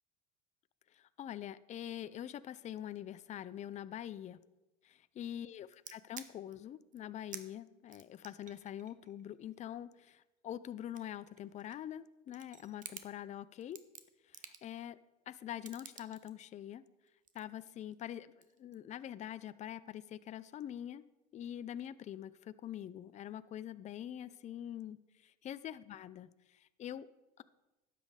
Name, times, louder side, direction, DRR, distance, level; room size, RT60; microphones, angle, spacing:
voice 1, 0.9-4.4 4.8-13.8 14.2-15.0 15.3-16.8 17.3-18.3 18.6-21.0 21.3-27.1 27.4-27.5, left 11 dB, 35° left, 15 dB, 0.5 m, -45 dB
sound 1, 5.7-6.5 6.9-7.0 7.3-7.5 7.9-10.2 10.7-12.0 12.3-13.1 13.6-14.8 15.6-16.3 17.1-18.1 18.4-18.7, right 8 dB, 40° right, 1.0 m, -51 dB
12.0 x 8.6 x 4.8 m, 1.0 s
supercardioid pair, 90°, 20 cm